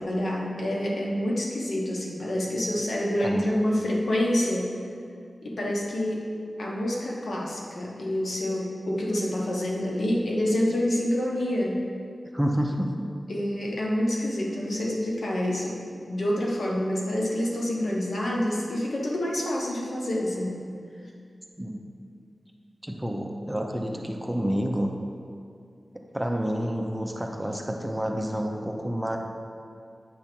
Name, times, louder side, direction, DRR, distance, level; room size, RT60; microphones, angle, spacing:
voice 1, 0.0-4.7 5.4-6.3 6.6-11.9 13.3-20.6, left 1 dB, 75° left, -3 dB, 1.1 m, -27 dB
voice 2, 3.2-3.6 12.3-13.1 21.6-21.8 22.8-24.9 26.1-29.2, equal, 10° right, 1 dB, 0.6 m, -29 dB
8.3 x 3.4 x 5.9 m, 2.3 s
wide cardioid pair, 90°, 0 cm